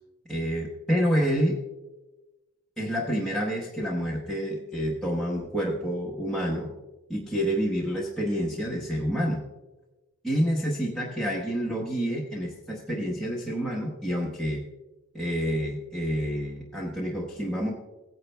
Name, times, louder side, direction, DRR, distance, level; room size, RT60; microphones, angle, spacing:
voice 1, 0.3-1.6 2.8-6.7 7.1-9.4 10.2-14.6 15.1-17.7, equal, ahead, -5 dB, 1.0 m, -28 dB
16.5 x 9.5 x 2.2 m, 1.1 s
head